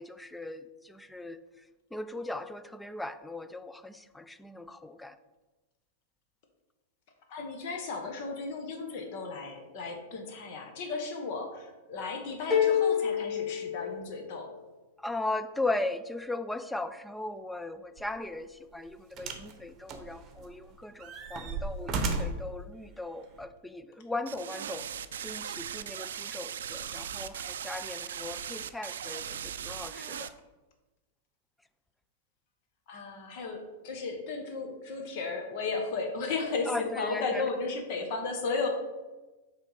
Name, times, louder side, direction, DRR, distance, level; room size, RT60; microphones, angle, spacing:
voice 1, 0.0-1.4 1.9-5.2 15.0-24.9 25.2-30.3 36.7-37.4, left 2 dB, 5° left, 12 dB, 0.3 m, -38 dB
voice 2, 7.3-14.5 32.9-38.7, left 4 dB, 55° left, 4 dB, 1.3 m, -34 dB
sound 1, 12.5-14.5, left 8 dB, 30° left, 1.4 m, -27 dB
sound 2, 18.0-18.2 19.2-19.5 19.9-20.6 21.0-22.5 23.4-23.5, right 3 dB, 35° right, 0.9 m, -34 dB
sound 3, 24.3-30.3, right 8 dB, 80° right, 0.3 m, -38 dB
5.6 x 3.5 x 5.7 m, 1.2 s
hypercardioid pair, 115°, 0 cm